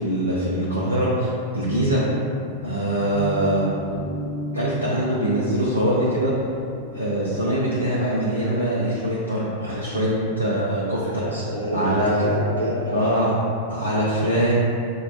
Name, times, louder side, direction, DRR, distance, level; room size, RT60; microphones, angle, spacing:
voice 1, 0.0-2.0 2.6-3.7 4.5-6.3 6.9-11.2 11.7-12.3 12.9-13.3 13.7-14.5, right 1 dB, 85° right, -7 dB, 0.5 m, -23 dB
sound 1, 1.6-7.7, left 1 dB, 40° left, 0.8 m, -35 dB
voice 2, 11.0-13.0, right 1 dB, 85° left, -7 dB, 0.9 m, -29 dB
5.7 x 2.2 x 2.5 m, 2.5 s
figure-of-eight pair, 90°, 0 cm